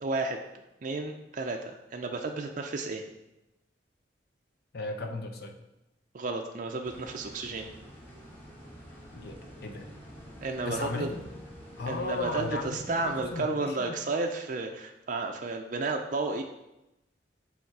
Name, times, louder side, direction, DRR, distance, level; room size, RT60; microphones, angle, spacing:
voice 1, 0.0-0.4 0.8-3.0 6.1-7.7 10.4-11.1 11.9-16.4, right 3 dB, 45° right, 2 dB, 0.4 m, -32 dB
voice 2, 4.7-5.5 9.1-9.9 10.7-11.4 11.8-14.0, left 3 dB, 60° left, 5 dB, 0.7 m, -36 dB
sound 1, 6.8-13.4, equal, 10° left, 2.2 m, -48 dB
7.1 x 3.5 x 4.6 m, 0.94 s
head